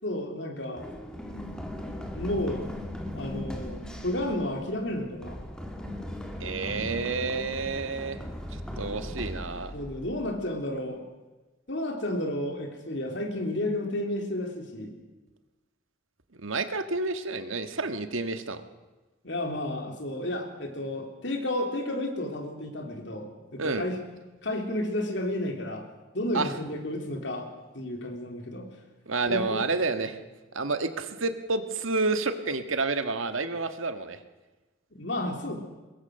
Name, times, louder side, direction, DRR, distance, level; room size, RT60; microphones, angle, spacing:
voice 1, 0.0-0.9 2.1-2.7 3.1-5.4 8.9-9.0 9.7-11.0 11.7-15.0 19.2-24.0 24.4-25.8 26.1-27.5 27.7-28.7 29.3-29.6 34.9-35.6, left 1 dB, 60° left, 3 dB, 3.6 m, -32 dB
Run, 0.8-10.5, left 1 dB, 5° left, 2.4 m, -38 dB
voice 2, 6.4-8.2 8.8-9.7 16.3-18.6 23.6-23.8 26.3-26.5 29.1-30.2 30.5-34.2, right 3 dB, 80° right, 9 dB, 1.6 m, -29 dB
23.0 x 21.0 x 6.6 m, 1.2 s
head